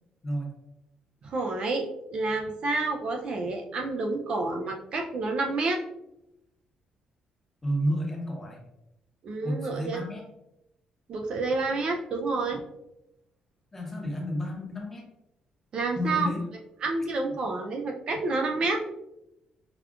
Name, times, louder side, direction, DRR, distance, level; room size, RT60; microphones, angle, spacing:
voice 1, 1.2-5.8 9.2-10.0 11.1-12.6 15.7-16.3 16.8-18.8, right 3 dB, 45° right, 3 dB, 0.3 m, -29 dB
voice 2, 7.6-8.6 9.4-10.2 13.7-15.0 16.0-16.4, equal, 15° left, -1 dB, 0.7 m, -31 dB
4.9 x 2.3 x 2.3 m, 0.88 s
cardioid pair, 175°, 2 cm